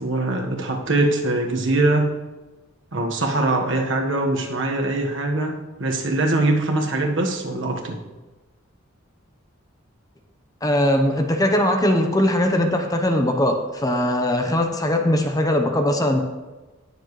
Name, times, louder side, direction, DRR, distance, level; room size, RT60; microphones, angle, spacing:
voice 1, 0.0-2.1 2.9-8.0, right 2 dB, 65° right, 1 dB, 1.5 m, -22 dB
voice 2, 10.6-16.2, left 1 dB, 20° left, 4 dB, 0.9 m, -20 dB
18.5 x 7.1 x 3.2 m, 1.2 s
head